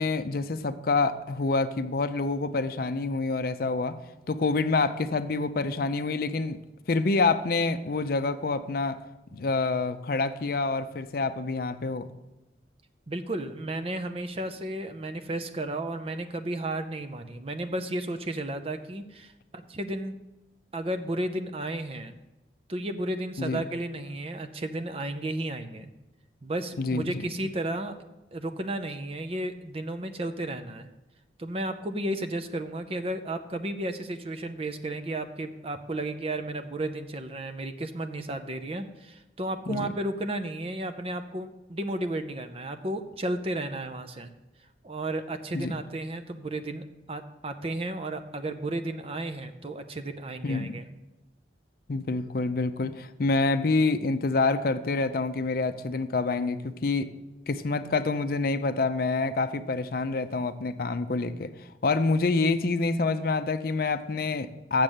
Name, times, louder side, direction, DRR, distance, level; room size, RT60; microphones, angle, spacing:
voice 1, 0.0-4.0 4.3-6.6 6.9-9.0 9.3-12.1 23.4-23.7 26.8-27.2 39.7-39.9 45.5-45.8 50.4-50.8 51.9-57.1 57.5-61.5 61.8-64.8, left 3 dB, 55° left, 11 dB, 0.5 m, -27 dB
voice 2, 13.1-20.2 20.7-22.1 22.7-25.9 26.4-27.9 28.3-30.9 31.4-44.3 44.8-50.9, right 1 dB, 35° right, 8 dB, 0.6 m, -33 dB
7.4 x 6.6 x 7.3 m, 1.0 s
head